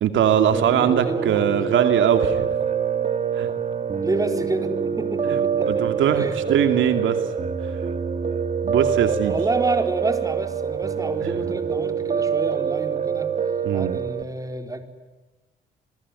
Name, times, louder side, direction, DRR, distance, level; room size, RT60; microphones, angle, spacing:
voice 1, 0.0-2.5 3.3-3.5 5.3-5.4 5.6-7.2 7.6-7.7 8.6-9.4 13.6-14.0, right 9 dB, 75° right, 8 dB, 2.6 m, -21 dB
Piano, 0.5-14.2, right 7 dB, 35° right, 2.9 m, -25 dB
voice 2, 0.7-1.6 4.0-6.4 9.2-13.3 13.7-14.8, right 2 dB, 15° right, 7 dB, 4.4 m, -29 dB
28.0 x 20.5 x 9.9 m, 1.2 s
cardioid pair, 90°, 20 cm